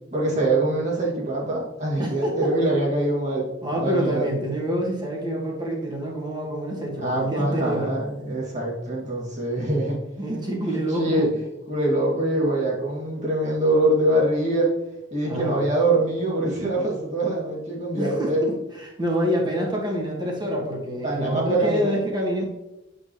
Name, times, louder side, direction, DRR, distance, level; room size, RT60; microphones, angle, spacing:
voice 1, 0.1-3.5 3.7-4.3 7.0-10.0 10.7-11.3 11.7-14.7 15.1-18.5 21.0-21.9, right 1 dB, 40° right, -5 dB, 2.4 m, -24 dB
voice 2, 2.0-2.5 3.6-7.9 10.2-11.3 15.2-15.7 18.0-22.4, equal, 25° right, -1 dB, 1.8 m, -27 dB
9.0 x 5.5 x 3.1 m, 0.95 s
head